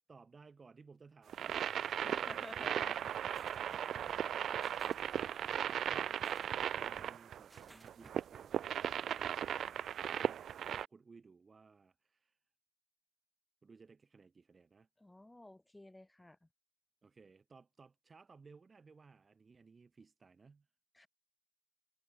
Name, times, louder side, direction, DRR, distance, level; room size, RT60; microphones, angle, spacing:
voice 1, 0.1-2.5 5.1-6.3 6.8-12.4 13.6-14.9 17.0-20.7, right 4 dB, 40° right, 2.3 m, -61 dB
sound 1, 1.3-10.9, right 9 dB, 65° right, 0.4 m, -37 dB
voice 2, 2.1-3.0 15.0-16.5 20.9-21.1, left 1 dB, 15° left, 5.0 m, -53 dB
sound 2, 2.6-8.2, right 2 dB, 20° right, 3.1 m, -59 dB
supercardioid pair, 50°, 0 cm